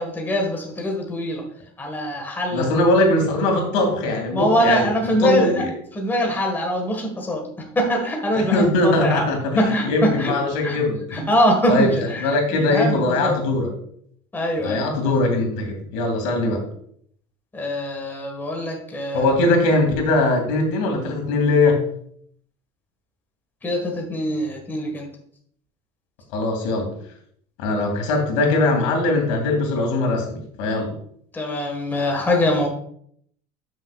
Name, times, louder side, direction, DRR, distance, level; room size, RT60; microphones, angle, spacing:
voice 1, 0.0-1.4 1.8-2.7 4.3-5.6 5.9-7.4 7.7-9.2 9.5-10.3 10.6-10.8 11.1-13.4 14.3-14.8 17.5-19.3 23.6-25.1 31.3-32.7, equal, 10° left, 1 dB, 1.7 m, -23 dB
voice 2, 2.5-5.7 8.3-11.3 11.7-11.9 12.2-13.7 14.6-16.6 19.1-21.8 26.3-26.9 27.6-30.9, left 2 dB, 90° left, 3 dB, 2.5 m, -21 dB
11.5 x 6.4 x 2.4 m, 0.65 s
cardioid pair, 150°, 16 cm